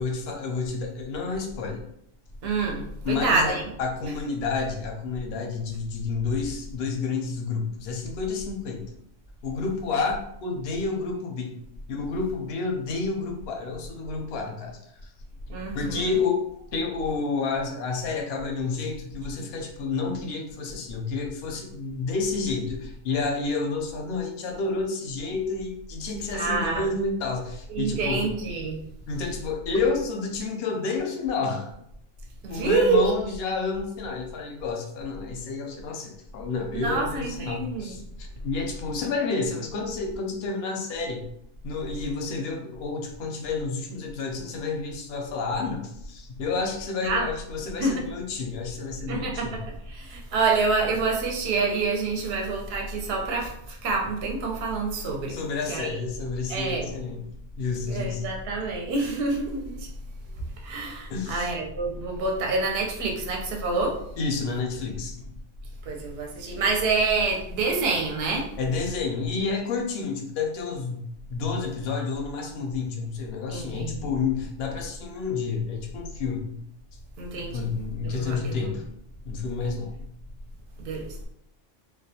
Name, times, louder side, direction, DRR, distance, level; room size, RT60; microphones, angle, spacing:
voice 1, 0.0-1.8 3.0-8.8 9.4-11.6 11.9-15.1 15.7-28.3 29.1-31.7 32.5-41.2 41.6-49.6 55.3-57.3 57.6-58.2 61.1-61.5 64.2-65.3 68.6-76.5 77.5-78.8 79.2-80.0, left 4 dB, 65° left, 2 dB, 0.7 m, -30 dB
voice 2, 2.4-3.6 15.5-16.1 26.3-26.9 27.7-28.8 32.4-33.0 36.7-37.9 47.0-47.3 47.8-48.0 49.1-49.6 49.9-55.4 55.7-56.0 56.5-56.9 57.9-59.9 60.6-64.0 65.8-68.5 73.5-74.1 77.2-77.6 78.0-78.7 80.8-81.3, right 3 dB, 60° right, 0 dB, 0.8 m, -27 dB
2.4 x 2.2 x 2.7 m, 0.74 s
omnidirectional pair, 1.3 m